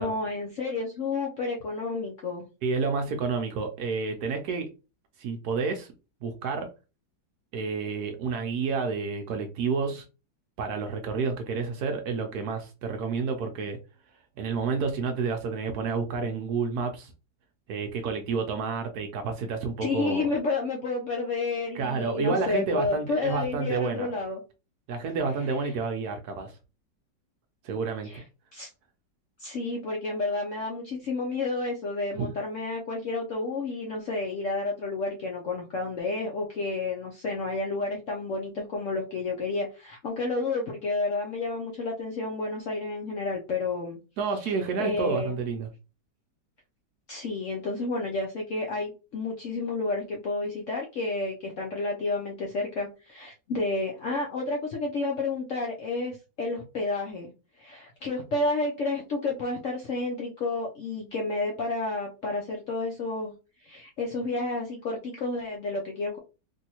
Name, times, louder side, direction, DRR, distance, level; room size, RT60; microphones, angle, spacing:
voice 1, 0.0-2.5 19.8-24.4 28.0-28.2 28.5-28.7 29.4-44.0 44.8-45.4 47.1-57.3 57.6-63.3 63.6-66.2, left 3 dB, 65° left, -1 dB, 0.7 m, -30 dB
voice 2, 2.6-4.7 5.2-5.9 6.2-6.7 7.5-10.0 10.6-13.8 14.4-17.1 17.7-20.3 21.7-24.1 24.9-26.6 27.6-28.2 32.1-32.3 44.2-45.7, right 4 dB, 70° right, 5 dB, 1.0 m, -30 dB
3.3 x 2.7 x 2.8 m, 0.31 s
omnidirectional pair, 2.0 m